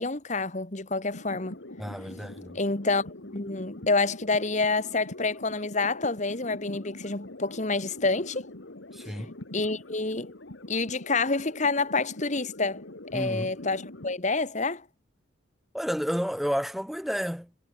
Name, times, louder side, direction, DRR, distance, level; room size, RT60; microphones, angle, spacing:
voice 1, 0.0-1.6 2.6-8.4 9.5-10.3 10.7-12.8 13.1-14.8, left 3 dB, 40° left, 1.7 m, -28 dB
sound 1, 1.1-14.1, left 1 dB, 75° left, 2.1 m, -43 dB
voice 2, 1.8-2.6 8.9-9.3 13.1-13.5 15.7-17.6, equal, ahead, 4.2 m, -31 dB
head